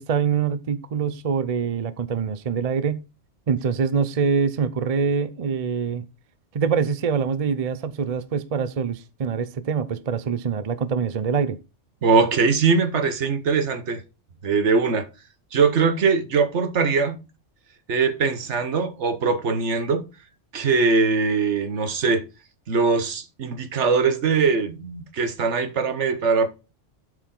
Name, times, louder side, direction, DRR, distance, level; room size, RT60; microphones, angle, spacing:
voice 1, 0.0-3.0 3.5-6.0 6.5-11.6, right 6 dB, 40° right, 0.6 m, -24 dB
voice 2, 12.0-14.0 14.4-15.1 15.5-17.2 17.9-20.1 20.5-22.2 22.7-26.5, right 5 dB, 70° right, 1.3 m, -21 dB
12.5 x 5.0 x 3.7 m
omnidirectional pair, 1.2 m